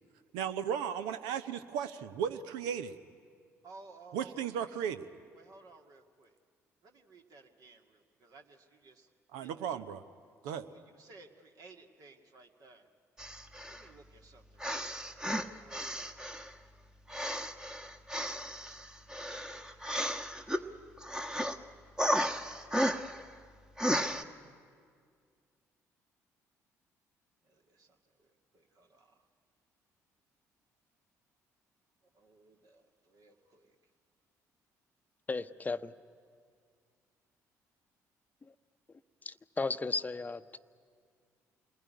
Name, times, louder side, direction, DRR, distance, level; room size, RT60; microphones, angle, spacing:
voice 1, 0.3-3.0 4.1-5.0 9.3-10.0 10.4-10.7, right 8 dB, 65° right, 11 dB, 1.0 m, -35 dB
voice 2, 3.6-4.9 5.3-6.3 6.8-9.1 9.4-9.6 10.4-12.9 13.7-15.1 15.6-16.3 18.2-19.8 27.5-27.9 28.2-28.3 28.5-29.1 32.1-33.7, right 3 dB, 50° right, 3 dB, 2.2 m, -57 dB
sound 1, 13.2-13.9 14.6-16.5 17.1-20.6 21.0-21.6 22.0-23.2 23.8-24.2, equal, 10° right, 1.3 m, -34 dB
voice 3, 35.3-35.9 39.3-40.6, left 3 dB, 20° left, 12 dB, 0.9 m, -35 dB
28.5 x 20.5 x 9.8 m, 2.1 s
figure-of-eight pair, 45°, 8 cm